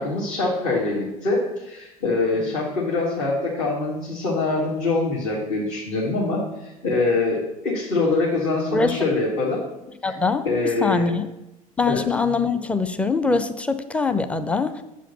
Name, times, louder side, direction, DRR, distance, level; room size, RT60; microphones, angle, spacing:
voice 1, 0.0-9.6 10.0-10.2 10.4-11.1 11.9-12.0, left 3 dB, 50° left, -5 dB, 2.0 m, -24 dB
voice 2, 10.0-10.4 10.8-11.3 11.8-14.8, left 4 dB, 5° left, 10 dB, 0.6 m, -23 dB
7.0 x 5.1 x 6.6 m, 0.95 s
figure-of-eight pair, 70°, 19 cm